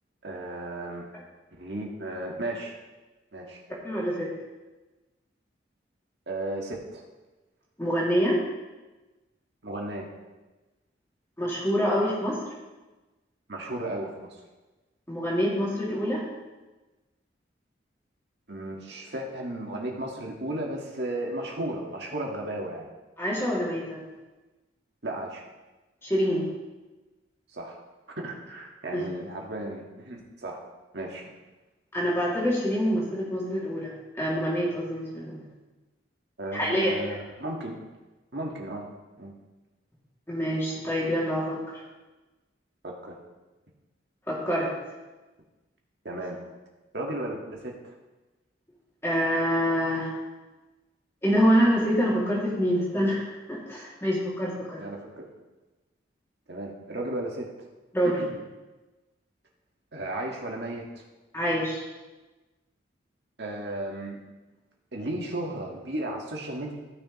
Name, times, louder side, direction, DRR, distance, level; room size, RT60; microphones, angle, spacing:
voice 1, 0.2-1.1 1.5-2.8 3.3-3.6 6.3-7.0 9.6-10.1 13.5-14.3 18.5-22.9 25.0-25.4 27.5-27.8 28.2-30.6 30.9-31.3 36.4-37.8 38.3-38.9 39.2-39.3 42.8-43.1 46.0-46.4 46.9-47.9 54.8-55.2 56.5-57.5 58.0-58.3 59.9-61.0 63.4-64.2 64.9-66.7, right 1 dB, 60° right, -1 dB, 1.7 m, -34 dB
voice 2, 3.8-4.3 7.8-8.4 11.4-12.4 15.1-16.2 23.2-24.0 26.0-26.5 28.9-29.0 31.9-35.4 36.5-36.9 40.3-41.6 44.3-44.7 49.0-50.1 51.2-54.8 57.9-58.2 61.3-61.8, equal, 15° left, -6 dB, 2.4 m, -26 dB
15.5 x 6.4 x 3.1 m, 1.2 s
head